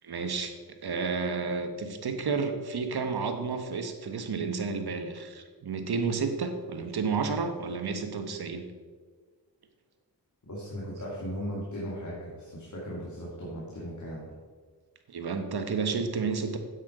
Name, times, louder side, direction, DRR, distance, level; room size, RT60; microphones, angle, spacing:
voice 1, 0.0-8.7 15.1-16.6, right 4 dB, 65° right, 7 dB, 1.3 m, -31 dB
voice 2, 10.4-14.3, equal, 45° left, -5 dB, 2.8 m, -37 dB
9.4 x 8.2 x 4.9 m, 1.5 s
cardioid pair, 75°, 41 cm